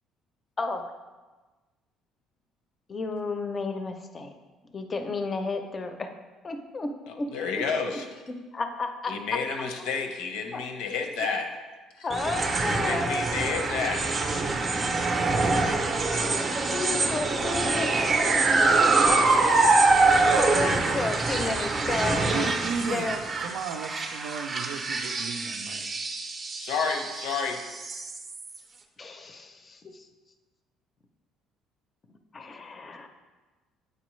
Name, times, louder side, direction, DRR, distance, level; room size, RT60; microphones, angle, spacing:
voice 1, 0.6-0.9 2.9-4.3 4.7-6.1 6.4-7.3 7.5-7.6 8.3-9.4 9.8-9.9 10.5-10.6 12.0-13.4 15.9-16.4 16.7-17.9 20.4-22.5 22.9-23.2 29.0-30.1 32.3-33.1, left 3 dB, 25° left, 6 dB, 0.5 m, -32 dB
voice 2, 7.1-8.1 9.1-11.5 12.0-12.1 12.9-14.1 26.6-27.6, left 5 dB, 90° left, 4 dB, 0.8 m, -30 dB
sound 1, 12.1-28.6, right 3 dB, 25° right, 0.5 m, -25 dB
voice 3, 22.2-25.9, right 6 dB, 85° right, 8 dB, 0.5 m, -35 dB
8.4 x 4.2 x 3.1 m, 1.3 s
cardioid pair, 150°, 0 cm